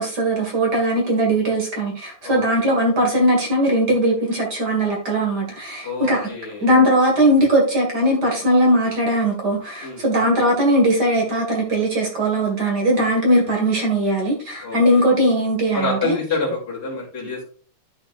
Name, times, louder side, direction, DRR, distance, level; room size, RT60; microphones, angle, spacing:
voice 1, 0.0-6.3 6.6-16.2, right 1 dB, 35° right, 0 dB, 1.9 m, -19 dB
voice 2, 2.2-2.7 5.8-6.7 9.8-10.0 14.6-15.0 15.7-17.5, left 3 dB, 20° left, -4 dB, 2.5 m, -27 dB
11.0 x 6.2 x 2.5 m, 0.40 s
omnidirectional pair, 3.8 m